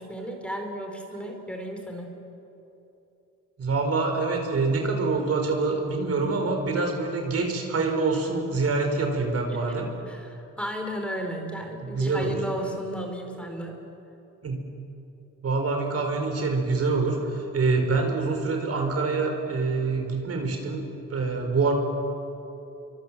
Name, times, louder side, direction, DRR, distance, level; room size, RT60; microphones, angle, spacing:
voice 1, 0.0-2.1 9.5-9.6 10.1-13.8, equal, 5° left, 3 dB, 4.3 m, -34 dB
voice 2, 3.6-9.9 11.7-12.3 14.4-14.5 15.4-21.7, right 3 dB, 50° right, 3 dB, 4.8 m, -26 dB
27.5 x 24.5 x 7.7 m, 2.9 s
cardioid pair, 90°, 30 cm